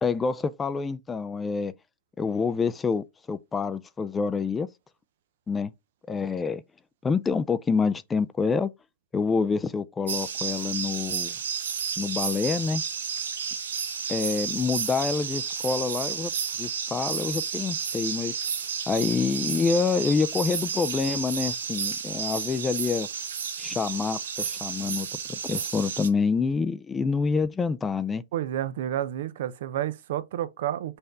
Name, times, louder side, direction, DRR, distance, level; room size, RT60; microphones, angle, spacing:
voice 1, 0.0-1.7 2.2-4.7 5.5-5.7 6.1-6.6 7.0-8.7 9.1-11.4 12.0-12.8 14.1-16.3 16.6-18.4 18.9-23.1 23.6-28.2, left 5 dB, 15° left, 0.4 m, -27 dB
sound 1, 10.1-26.1, right 7 dB, 90° right, 0.9 m, -32 dB
voice 2, 28.3-31.0, right 11 dB, 65° right, 0.5 m, -30 dB
5.6 x 2.6 x 3.5 m
hypercardioid pair, 135°, 0 cm